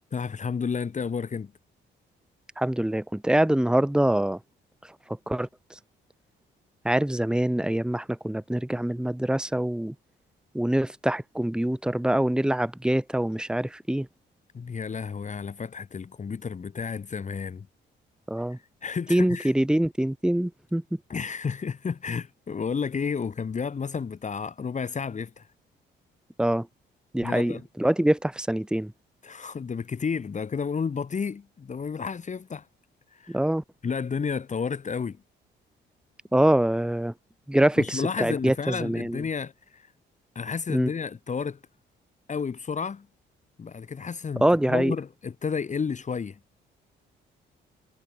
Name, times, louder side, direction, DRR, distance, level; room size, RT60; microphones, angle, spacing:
voice 1, 0.1-1.5 14.5-17.7 18.5-19.5 21.1-25.5 27.2-27.6 29.2-32.7 33.1-33.4 33.8-35.2 37.8-39.9 40.4-41.6 42.3-43.1 43.6-46.4, left 6 dB, 35° left, 2.1 m, -31 dB
voice 2, 2.6-4.4 5.3-5.5 6.8-9.9 10.5-14.1 18.3-18.6 19.1-20.8 26.4-26.7 27.1-28.9 33.3-33.6 36.3-37.1 37.5-39.2 40.7-40.9 44.4-44.9, right 1 dB, 5° right, 1.9 m, -24 dB
cardioid pair, 90°, 20 cm